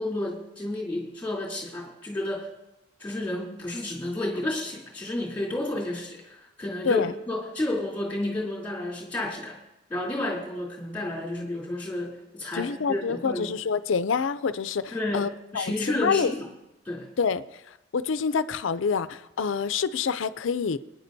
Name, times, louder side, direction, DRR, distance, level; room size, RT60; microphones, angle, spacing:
voice 1, 0.0-2.5 3.0-9.6 9.9-13.5 14.9-16.5 16.8-17.1, left 1 dB, 10° left, 3.1 m, -31 dB
voice 2, 12.5-15.3 15.5-16.3 17.2-17.4 17.9-20.8, left 6 dB, 80° left, 0.5 m, -27 dB
26.0 x 10.0 x 2.7 m
head